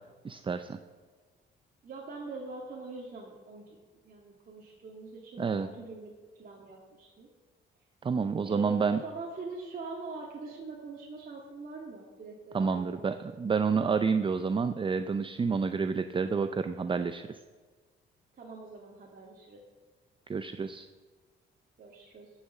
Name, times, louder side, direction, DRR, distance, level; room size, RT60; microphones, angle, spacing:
voice 1, 0.2-0.8 5.4-5.7 8.0-9.0 12.5-17.4 20.3-20.9, right 5 dB, 25° right, 10 dB, 0.5 m, -29 dB
voice 2, 1.8-3.8 4.0-7.3 8.4-13.1 18.4-19.6 21.8-22.3, right 3 dB, 45° right, -2 dB, 1.9 m, -43 dB
13.0 x 6.5 x 7.1 m, 1.4 s
cardioid pair, 90°, 20 cm